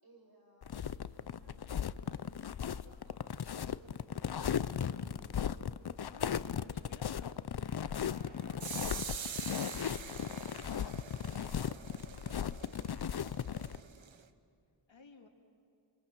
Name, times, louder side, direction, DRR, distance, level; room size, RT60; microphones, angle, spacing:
voice 1, 0.0-5.5 8.3-13.1, right 1 dB, 50° right, 1 dB, 5.9 m, -64 dB
sound 1, 0.6-13.8, left 8 dB, 55° left, 0.6 m, -37 dB
voice 2, 6.0-7.4 14.9-15.3, left 3 dB, 75° left, 3 dB, 2.5 m, -57 dB
Explosion, 7.9-10.9, left 2 dB, 20° right, 5.2 m, -58 dB
sound 2, 8.6-14.2, right 7 dB, 80° right, 1.1 m, -45 dB
28.5 x 26.0 x 6.1 m, 2.6 s
wide cardioid pair, 60°, 46 cm